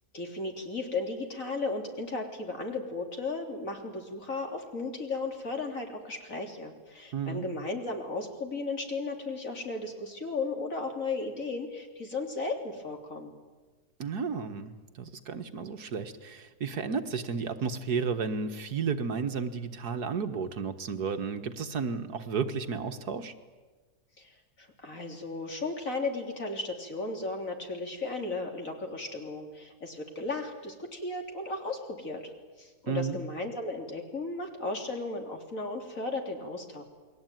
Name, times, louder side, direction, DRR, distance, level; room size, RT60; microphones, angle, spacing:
voice 1, 0.1-13.3 24.2-32.3 32.6-36.8, left 3 dB, 55° left, 3 dB, 3.8 m, -35 dB
voice 2, 7.1-7.5 14.0-23.3 32.9-33.2, right 5 dB, 75° right, 8 dB, 2.0 m, -33 dB
29.0 x 21.5 x 9.3 m, 1.3 s
omnidirectional pair, 1.7 m